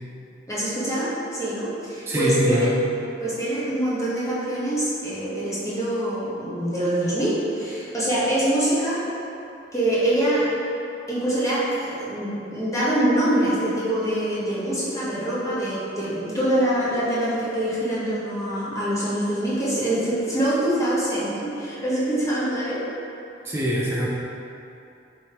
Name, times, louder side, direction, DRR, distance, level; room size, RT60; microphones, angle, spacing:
voice 1, 0.5-2.7 3.2-9.0 9.7-10.5 11.1-22.8, right 1 dB, 20° left, -10 dB, 1.1 m, -24 dB
voice 2, 2.1-2.8 23.4-24.1, equal, 15° right, -7 dB, 0.4 m, -23 dB
4.2 x 3.1 x 3.4 m, 2.7 s
head